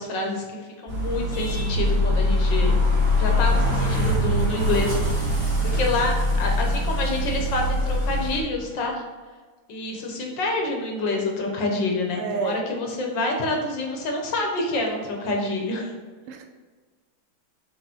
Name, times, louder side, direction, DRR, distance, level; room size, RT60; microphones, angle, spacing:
voice 1, 0.0-2.8 3.1-9.0 9.7-15.9, left 2 dB, 60° left, 1 dB, 1.6 m, -27 dB
sound 1, 0.9-8.4, left 1 dB, 10° right, 1.3 m, -23 dB
voice 2, 3.3-4.2 12.2-12.6 16.3-16.5, right 5 dB, 85° right, 5 dB, 1.7 m, -32 dB
7.0 x 4.0 x 4.3 m, 1.4 s
omnidirectional pair, 2.4 m